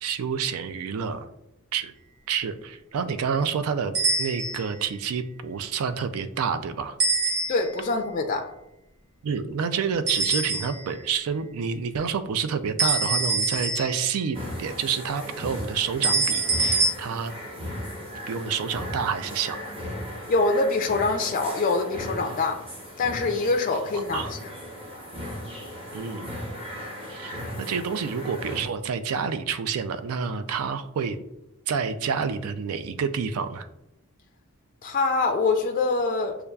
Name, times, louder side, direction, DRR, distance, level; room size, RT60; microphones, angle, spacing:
voice 1, 0.0-1.3 1.7-1.9 2.3-3.9 4.2-7.0 9.2-17.3 18.3-19.8 24.1-24.3 25.9-26.3 27.1-31.2 31.7-33.7, right 6 dB, 80° right, 0.4 m, -28 dB
sound 1, 3.9-4.7 7.0-7.9 10.1-11.0 12.8-14.2 16.0-16.9, right 3 dB, 50° right, 0.8 m, -25 dB
voice 2, 7.5-8.5 20.3-22.6 23.0-24.5 34.8-36.4, left 3 dB, 40° left, 0.3 m, -24 dB
sound 2, 14.3-28.6, equal, 25° right, 0.9 m, -37 dB
6.5 x 2.3 x 2.2 m
head